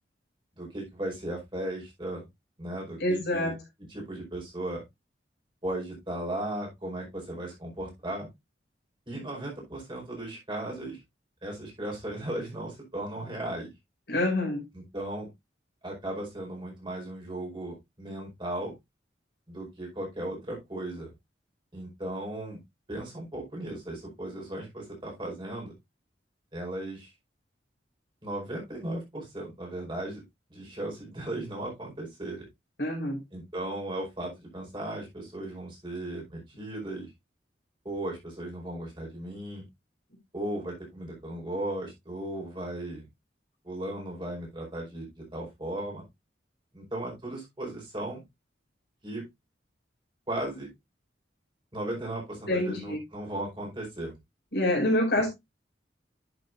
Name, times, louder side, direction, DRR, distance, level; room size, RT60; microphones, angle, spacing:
voice 1, 0.5-2.2 2.6-3.5 3.8-4.8 5.6-8.3 9.1-11.0 11.4-13.7 14.7-15.3 15.8-18.7 19.5-21.1 21.7-22.6 22.9-25.7 26.5-27.1 28.2-30.2 30.5-32.5 33.3-37.1 37.8-39.6 40.3-43.0 43.6-46.0 46.7-48.2 49.0-49.2 50.3-50.7 51.7-54.1, right 1 dB, 25° right, 4.9 m, -36 dB
voice 2, 3.0-3.5 14.1-14.6 32.8-33.2 52.5-53.0 54.5-55.3, left 1 dB, 65° left, 5.0 m, -26 dB
11.0 x 7.1 x 2.6 m
head